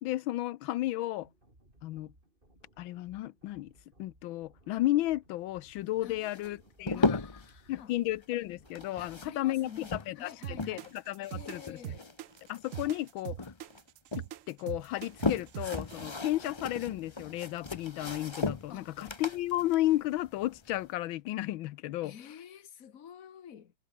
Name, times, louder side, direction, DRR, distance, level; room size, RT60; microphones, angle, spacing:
voice 1, 0.0-1.3 1.8-2.1 2.8-3.7 4.0-7.2 7.7-11.9 12.5-13.5 14.2-22.1, left 15 dB, 85° left, 1.5 m, -33 dB
sound 1, 1.2-9.2, right 1 dB, 25° right, 5.8 m, -63 dB
voice 2, 6.0-6.6 6.9-7.9 9.0-10.9 11.3-12.2 18.7-19.0 22.0-23.7, left 8 dB, 50° left, 1.6 m, -49 dB
sound 2, 6.2-7.5 8.6-11.0 11.3-13.1 13.4-14.3 14.8-20.9, left 3 dB, 20° left, 0.8 m, -36 dB
sound 3, 10.4-16.1, right 12 dB, 80° right, 0.7 m, -42 dB
omnidirectional pair, 2.1 m